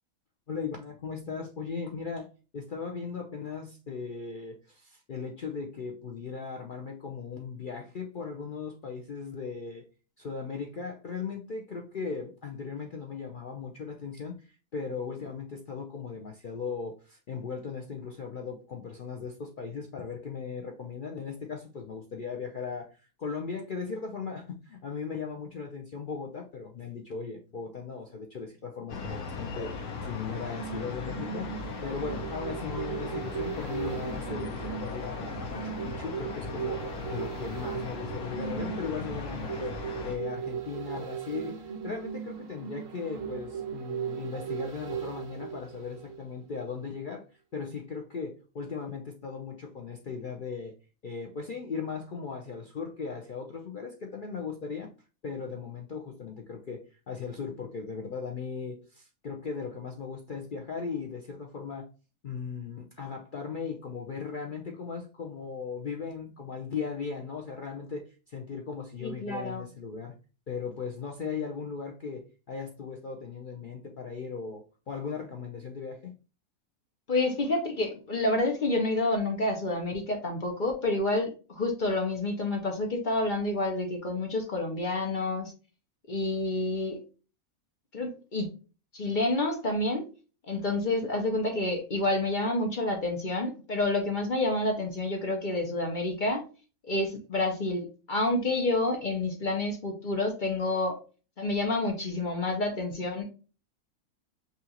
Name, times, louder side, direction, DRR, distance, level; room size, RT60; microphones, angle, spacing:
voice 1, 0.5-2.3 2.5-9.8 10.2-47.2 47.5-50.7 51.0-54.9 55.2-61.9 62.2-70.1 70.5-76.1, left 5 dB, 70° left, 2 dB, 0.5 m, -38 dB
sound 1, 28.9-40.2, left 4 dB, 85° left, 1.4 m, -38 dB
sound 2, 30.2-46.5 46.8-46.9, right 8 dB, 65° right, 1.2 m, -38 dB
voice 2, 69.0-69.6 77.1-85.5 86.1-87.0 87.9-88.5 88.9-90.0 90.5-96.5 96.9-101.0 101.4-103.2, left 2 dB, 40° left, 3 dB, 0.8 m, -29 dB
5.7 x 2.5 x 2.8 m, 0.34 s
omnidirectional pair, 1.6 m